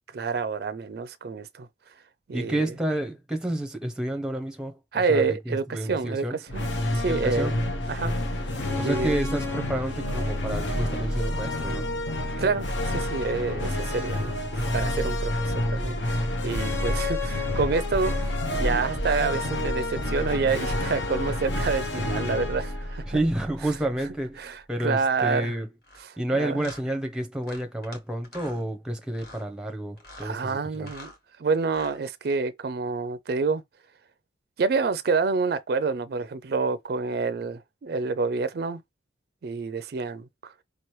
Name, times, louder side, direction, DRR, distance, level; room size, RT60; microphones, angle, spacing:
voice 1, 0.1-1.7 2.3-2.7 4.9-7.6 7.9-8.1 8.8-9.2 12.4-14.3 14.7-23.2 24.4-25.5 26.0-26.7 30.2-31.1 31.4-33.6 34.6-38.8 39.4-40.5, right 4 dB, 55° right, 0.4 m, -28 dB
voice 2, 2.3-4.8 5.1-6.4 7.1-7.5 8.8-11.9 23.1-25.7 26.2-30.9, right 1 dB, 5° right, 0.6 m, -30 dB
sound 1, 6.5-23.9, left 1 dB, 75° left, 0.8 m, -29 dB
sound 2, 15.5-19.4 19.6-20.4 20.7-21.3 21.7-22.3, right 1 dB, 35° left, 1.1 m, -38 dB
sound 3, 25.8-26.0 26.6-26.8 27.4-28.0 28.2-28.6 29.1-29.5 30.0-30.3 30.7-31.2 31.6-32.0, left 2 dB, 55° left, 1.5 m, -45 dB
5.0 x 3.0 x 3.1 m
head